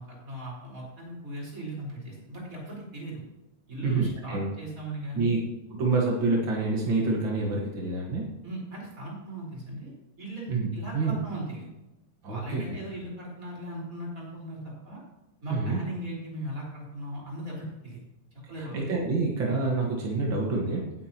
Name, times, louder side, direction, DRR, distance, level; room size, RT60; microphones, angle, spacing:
voice 1, 0.0-3.2 3.7-5.3 8.4-9.9 10.2-11.7 12.2-15.0 15.4-18.0 18.5-18.9, right 1 dB, 20° right, -4 dB, 4.6 m, -38 dB
voice 2, 3.8-4.5 5.1-5.4 5.8-8.3 10.5-10.7 10.9-11.2 12.2-12.6 15.5-15.8 18.6-20.9, right 3 dB, 60° right, -2 dB, 1.2 m, -27 dB
18.5 x 8.6 x 2.9 m, 0.99 s
omnidirectional pair, 4.6 m